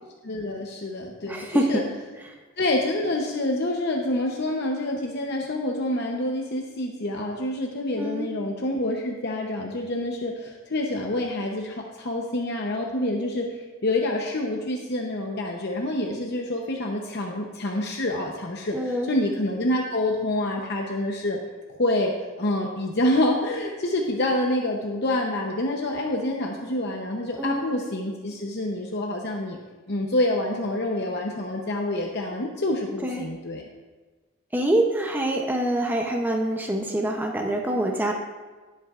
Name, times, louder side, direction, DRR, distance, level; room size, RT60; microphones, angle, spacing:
voice 1, 0.2-1.8 2.6-21.4 21.7-22.1 22.4-29.6 29.9-33.6, left 1 dB, 50° left, 0 dB, 0.8 m, -27 dB
voice 2, 1.3-1.8 8.0-8.3 18.7-19.1 27.4-27.6 33.0-33.3 34.5-38.1, right 1 dB, 10° right, 1 dB, 0.7 m, -25 dB
19.0 x 8.2 x 2.5 m, 1.3 s
head